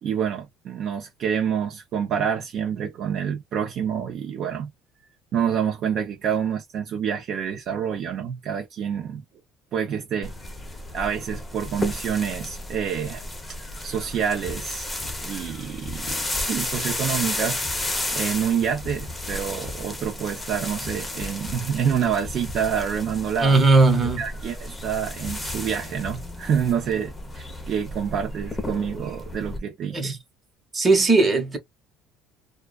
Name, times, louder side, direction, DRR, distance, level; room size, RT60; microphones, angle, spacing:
voice 1, 0.0-4.7 5.3-9.2 9.7-10.3 10.9-14.9 15.2-17.6 18.1-23.7 24.2-30.2, right 8 dB, 50° right, 0.6 m, -27 dB
sound 1, 10.2-29.6, left 1 dB, 10° left, 0.7 m, -33 dB
voice 2, 23.4-24.2 29.9-30.2 30.7-31.6, right 3 dB, 20° right, 1.0 m, -18 dB
2.3 x 2.3 x 2.3 m
cardioid pair, 130°, 0 cm